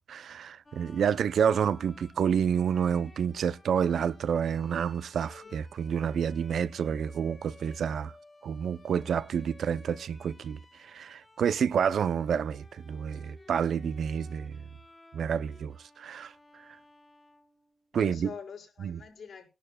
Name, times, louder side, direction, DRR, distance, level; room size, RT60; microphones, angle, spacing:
voice 1, 0.0-8.1 8.4-14.6 15.1-16.3 17.9-18.3 18.8-19.0, right 7 dB, 75° right, 0.5 m, -29 dB
Bowed string instrument, 0.7-18.1, left 2 dB, 25° left, 2.1 m, -57 dB
voice 2, 15.3-15.7 17.9-19.5, left 6 dB, 70° left, 5.2 m, -44 dB
20.0 x 11.5 x 2.3 m
cardioid pair, 90°, 0 cm